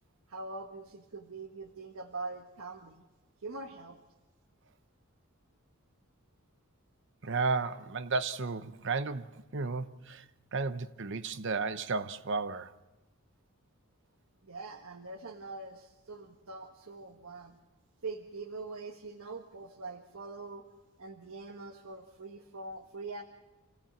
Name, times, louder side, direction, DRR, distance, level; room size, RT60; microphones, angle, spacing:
voice 1, 0.3-3.0 3.4-4.0 14.4-17.5 18.0-20.6 21.0-23.2, right 3 dB, 80° right, 1.5 m, -43 dB
voice 2, 7.2-10.2 10.5-12.7, right 4 dB, 60° right, 0.9 m, -33 dB
27.0 x 17.0 x 7.3 m
head